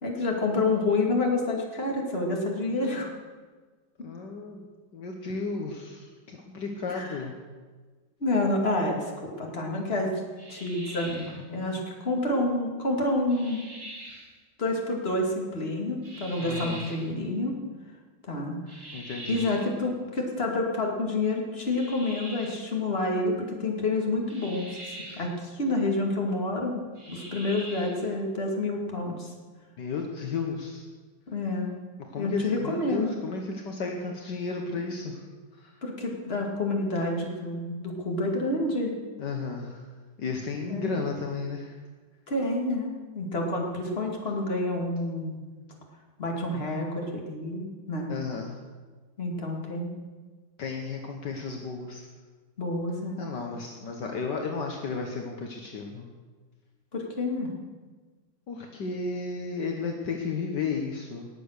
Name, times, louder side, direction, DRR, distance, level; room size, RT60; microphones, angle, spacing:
voice 1, 0.0-3.1 4.0-4.1 6.9-7.2 8.2-10.2 10.5-13.6 14.6-17.5 18.3-18.6 19.3-26.8 27.1-29.3 31.3-31.7 32.2-33.2 35.8-38.9 40.7-41.0 42.3-45.4 46.2-48.1 49.2-49.9 52.6-53.2 56.9-57.5, left 2 dB, 30° left, 0 dB, 2.5 m, -28 dB
voice 2, 4.0-4.7 4.9-7.4 16.4-16.8 18.9-19.4 29.8-30.8 32.1-35.2 35.5-35.7 39.2-39.9 40.2-41.8 48.1-48.6 50.6-52.1 53.2-56.1 58.5-61.3, left 4 dB, 65° left, 2 dB, 1.8 m, -33 dB
sound 1, 10.4-11.4 13.3-14.3 16.0-17.1 18.7-19.7 21.6-22.7 24.3-25.3 26.9-28.0, right 1 dB, 35° right, 2.9 m, -43 dB
19.5 x 7.6 x 6.6 m, 1.4 s
omnidirectional pair, 2.0 m